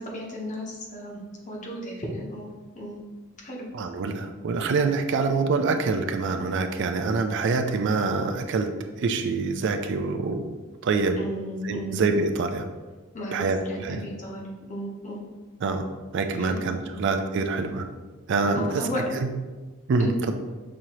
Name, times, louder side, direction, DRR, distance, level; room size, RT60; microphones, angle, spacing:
voice 1, 0.0-3.0 3.4-3.7 11.2-12.0 13.1-15.2 16.3-16.7 18.5-19.1 20.0-20.1, equal, 35° left, -3 dB, 0.9 m, -34 dB
voice 2, 3.7-10.5 10.8-11.2 11.6-12.7 13.3-14.0 15.6-15.9 16.1-17.9 18.3-18.9 19.1-19.3 19.9-20.1, right 4 dB, 60° right, 6 dB, 0.4 m, -25 dB
6.2 x 2.8 x 2.9 m, 1.3 s
head